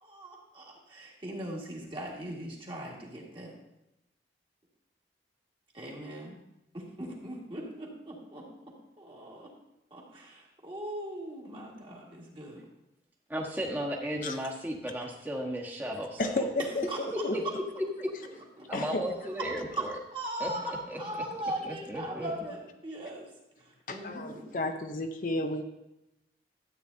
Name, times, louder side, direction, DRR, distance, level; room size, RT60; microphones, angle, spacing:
voice 1, 0.0-3.6 5.7-6.4 6.7-9.5 9.9-12.6 13.6-13.7 16.9-17.0 18.6-18.8 19.7-19.8 20.1-23.3 23.9-24.5, right 1 dB, 30° right, -2 dB, 1.8 m, -39 dB
voice 2, 13.3-16.5 17.3-17.4 18.0-18.1 18.7-20.0 20.4-20.5 20.9-21.0 21.6-22.3, equal, 10° right, -1 dB, 1.3 m, -35 dB
voice 3, 16.2-17.4 18.7-19.1 23.9-25.6, left 2 dB, 50° left, 6 dB, 0.6 m, -32 dB
12.5 x 8.5 x 2.7 m, 0.92 s
head